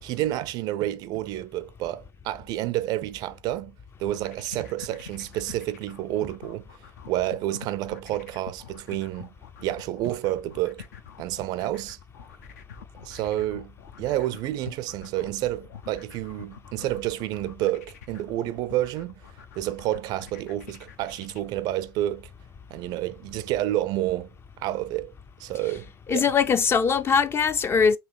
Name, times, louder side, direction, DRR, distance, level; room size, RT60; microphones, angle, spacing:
voice 1, 0.0-6.7 7.1-9.3 9.6-10.9 11.2-12.0 13.0-19.1 19.6-22.3 22.7-25.1 25.4-26.3, right 14 dB, 50° right, 0.4 m, -29 dB
sound 1, 4.0-21.4, left 8 dB, 70° left, 0.6 m, -46 dB
voice 2, 26.1-28.0, left 6 dB, 30° left, 0.5 m, -21 dB
5.5 x 2.8 x 3.1 m
figure-of-eight pair, 70°, 9 cm